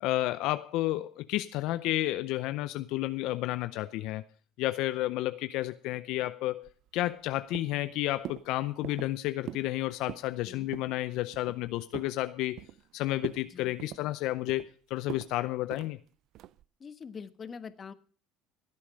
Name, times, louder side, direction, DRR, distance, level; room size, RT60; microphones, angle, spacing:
voice 1, 0.0-4.2 4.6-12.6 12.9-16.0, left 16 dB, 70° left, 0.6 m, -31 dB
sound 1, 6.6-7.3 7.5-7.9 8.3-8.5 8.8-9.1 9.5-9.7 10.0-10.3 10.7-11.0 11.3-12.2 12.6-12.9 13.2-13.5 13.8-14.7 15.1-15.3 15.7-15.9 16.4-16.6, right 13 dB, 65° right, 0.5 m, -42 dB
voice 2, 16.8-17.9, left 6 dB, 35° left, 1.3 m, -44 dB
16.5 x 8.6 x 6.3 m
supercardioid pair, 90°, 0 cm